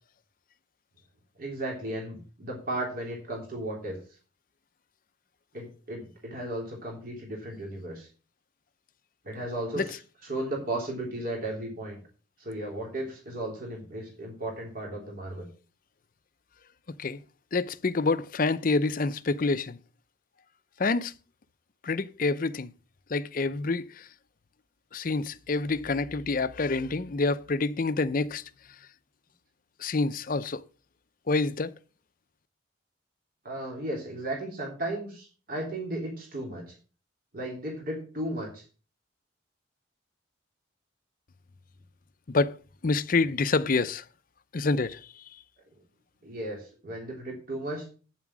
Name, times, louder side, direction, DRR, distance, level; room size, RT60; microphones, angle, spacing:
voice 1, 1.4-4.0 5.5-8.1 9.2-10.0 10.2-12.0 12.4-15.5 33.4-36.7 37.3-38.6 46.2-47.9, right 1 dB, 45° right, 3.2 m, -35 dB
voice 2, 17.5-19.8 20.8-21.1 21.8-22.7 23.1-24.1 24.9-28.4 29.8-30.6 31.3-31.7 42.3-42.6 42.8-44.0 44.5-45.0, left 3 dB, 45° left, 0.6 m, -27 dB
9.0 x 7.3 x 6.1 m
head